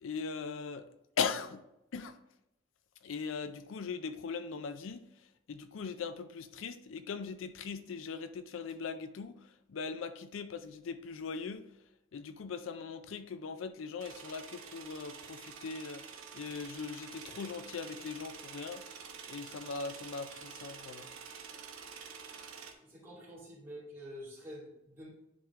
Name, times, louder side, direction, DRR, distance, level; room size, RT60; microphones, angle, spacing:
voice 1, 0.0-0.8 1.2-1.6 1.9-2.2 3.0-5.1 5.5-9.4 9.7-11.7 12.1-18.8 19.3-21.1, left 5 dB, 75° left, 0.4 m, -40 dB
sound 1, 14.0-22.7, right 6 dB, 85° right, 0.9 m, -48 dB
voice 2, 22.8-25.1, equal, 10° right, 2.4 m, -48 dB
10.0 x 3.5 x 3.6 m
head